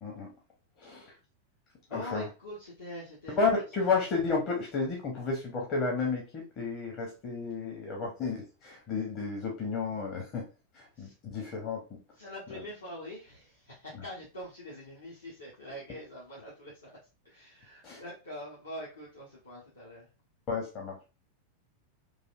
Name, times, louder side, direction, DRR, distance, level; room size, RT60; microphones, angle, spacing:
voice 1, 0.0-0.3 0.8-1.1 1.9-2.2 3.4-10.5 10.7-12.0 17.8-18.0 20.5-21.0, left 4 dB, 35° left, -1 dB, 0.7 m, -32 dB
voice 2, 1.9-3.9 10.9-11.1 12.1-16.9 17.2-20.1, equal, 75° left, -5 dB, 0.9 m, -44 dB
3.3 x 2.4 x 2.3 m, 0.31 s
figure-of-eight pair, 90°, 0 cm